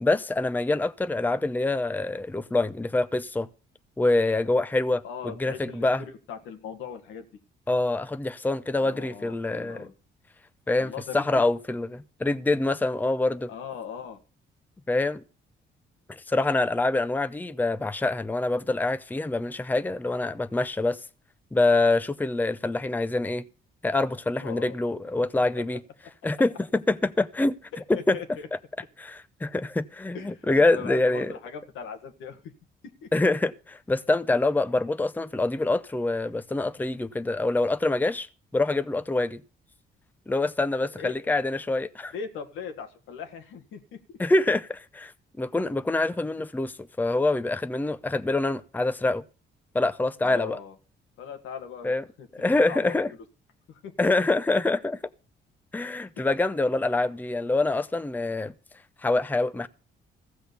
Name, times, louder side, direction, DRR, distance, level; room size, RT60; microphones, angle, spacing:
voice 1, 0.0-3.5 4.0-5.0 5.4-6.0 7.7-9.8 10.7-13.5 14.9-15.2 16.3-21.0 21.5-23.4 23.8-25.8 26.2-27.5 28.1-28.2 29.0-31.3 33.1-38.3 38.5-39.4 40.3-42.1 44.2-45.1 45.4-46.7 47.0-49.2 49.7-50.6 51.8-52.0 52.3-53.1 54.0-55.0 55.7-58.5 59.0-59.7, left 2 dB, 10° left, 0.6 m, -25 dB
voice 2, 5.0-7.3 8.8-9.9 10.8-11.4 13.5-14.2 24.3-24.8 25.2-25.5 27.7-28.5 30.1-32.5 33.0-33.1 40.9-41.3 42.1-44.2 50.2-50.7 51.2-51.9 52.2-53.0 53.7-54.1, left 6 dB, 90° left, 1.8 m, -39 dB
15.0 x 6.2 x 6.9 m
cardioid pair, 90°, 20 cm